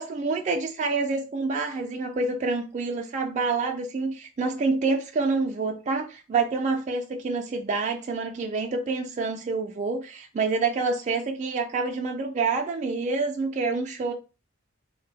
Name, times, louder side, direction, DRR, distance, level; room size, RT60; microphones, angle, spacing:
voice 1, 0.0-14.1, right 4 dB, 35° right, 0.3 m, -27 dB
3.6 x 2.0 x 3.3 m
head